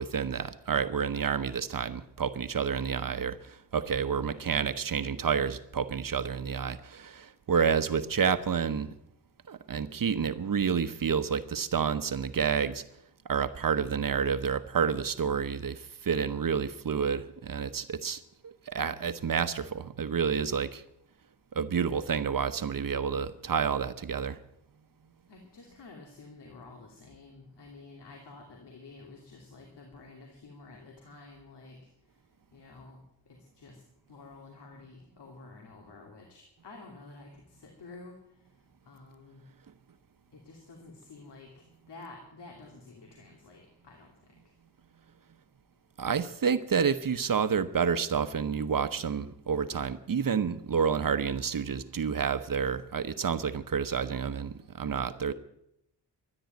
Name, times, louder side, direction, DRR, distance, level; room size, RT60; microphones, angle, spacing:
voice 1, 0.0-8.9 9.5-12.8 13.3-20.8 21.5-24.4 46.0-55.3, right 6 dB, 55° right, 11 dB, 0.9 m, -29 dB
voice 2, 4.2-4.5 25.3-31.8 32.5-33.0 33.3-33.8 34.1-38.2 38.8-39.4 40.3-44.1, left 3 dB, 80° left, 1 dB, 2.8 m, -50 dB
13.0 x 11.0 x 9.1 m, 0.79 s
cardioid pair, 65°, 41 cm